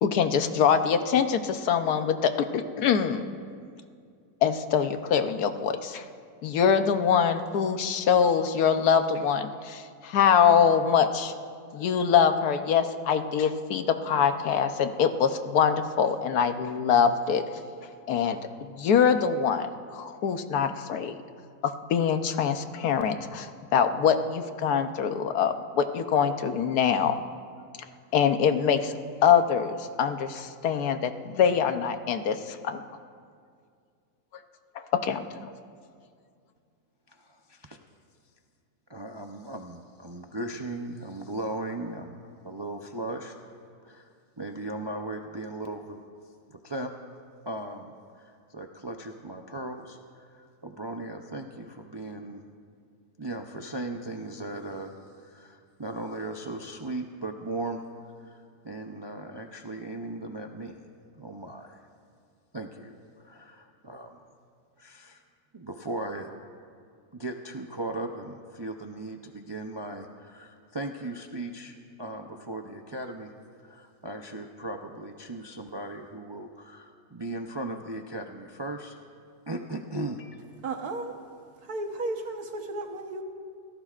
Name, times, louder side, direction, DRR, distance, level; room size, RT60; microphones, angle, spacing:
voice 1, 0.0-3.3 4.4-6.0 6.4-11.3 11.7-17.4 18.1-18.4 18.8-21.2 21.6-27.2 28.1-28.9 29.2-32.8 35.0-35.3, left 7 dB, 85° left, 8 dB, 1.3 m, -24 dB
voice 2, 37.1-37.8 38.9-43.3 43.8-46.0 46.5-46.9 47.5-52.4 53.2-57.8 58.2-60.8 61.2-61.8 62.5-64.2 64.8-65.2 65.5-66.3 67.1-73.3 73.6-78.9 79.5-80.5, right 2 dB, 40° right, 3 dB, 0.4 m, -37 dB
voice 3, 80.6-81.1 81.6-83.2, right 2 dB, 75° right, 4 dB, 1.7 m, -34 dB
26.0 x 17.5 x 2.5 m, 2.2 s
omnidirectional pair, 1.6 m